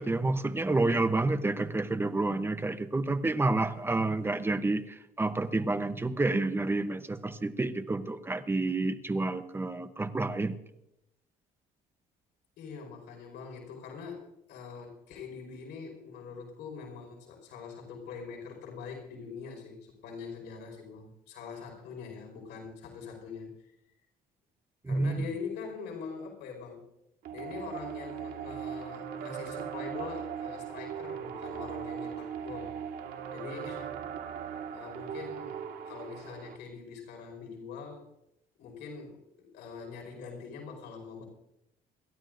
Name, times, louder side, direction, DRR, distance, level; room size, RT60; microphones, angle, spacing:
voice 1, 0.0-10.6 24.8-25.2, right 2 dB, 15° right, 11 dB, 0.9 m, -29 dB
voice 2, 12.6-23.7 24.9-26.8 27.3-32.7 33.3-33.9 34.7-38.1 38.6-41.2, left 5 dB, 85° left, 1 dB, 5.1 m, -43 dB
sound 1, 27.2-36.6, right 8 dB, 70° right, 1.8 m, -39 dB
27.5 x 12.5 x 2.6 m, 0.84 s
cardioid pair, 110°, 17 cm